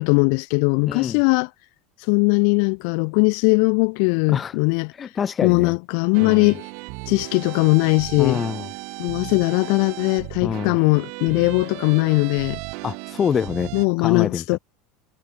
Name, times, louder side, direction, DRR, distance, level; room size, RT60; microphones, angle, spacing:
voice 1, 0.0-1.5 2.1-4.9 5.4-6.6 7.1-8.4 9.0-12.6 13.7-14.6, left 40 dB or more, 60° left, 2.2 m, -20 dB
voice 2, 0.9-1.2 4.3-4.6 5.0-5.7 6.2-6.5 8.2-8.7 10.4-10.8 12.8-13.7 14.0-14.4, left 7 dB, 20° left, 2.0 m, -26 dB
sound 1, 6.1-13.9, right 36 dB, 55° right, 2.9 m, -35 dB
supercardioid pair, 160°, 0 cm